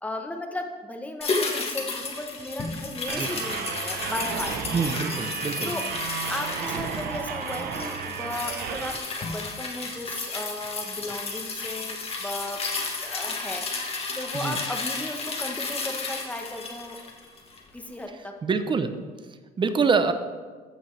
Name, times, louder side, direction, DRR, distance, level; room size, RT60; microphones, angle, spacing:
voice 1, 0.0-4.6 5.6-5.9 6.3-12.6 13.0-17.0 17.7-18.3, left 1 dB, 10° left, 3 dB, 1.0 m, -35 dB
sound 1, 1.2-17.7 18.0-18.1, left 3 dB, 35° left, 1.3 m, -33 dB
sound 2, 3.1-9.0, right 7 dB, 70° right, 0.8 m, -33 dB
voice 2, 4.7-5.7 14.3-14.6 18.4-19.0 19.3-20.1, right 5 dB, 30° right, 10 dB, 0.7 m, -25 dB
14.5 x 5.4 x 3.3 m, 1.4 s
cardioid pair, 110°, 17 cm